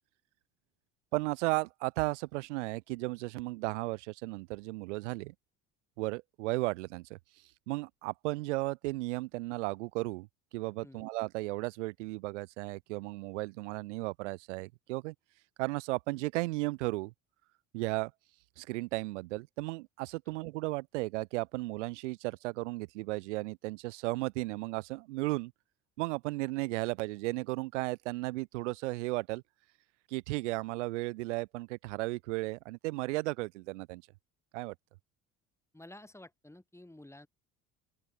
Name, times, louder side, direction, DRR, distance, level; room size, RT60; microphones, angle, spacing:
voice 1, 1.1-5.3 6.0-7.2 7.7-10.3 10.5-15.1 15.6-17.1 17.7-18.1 18.6-25.5 26.0-29.4 30.1-34.0 34.5-34.7, right 22 dB, 85° right, 1.2 m, -35 dB
voice 2, 35.7-37.3, left 1 dB, 10° left, 7.1 m, -52 dB
open air
hypercardioid pair, 75°, 35 cm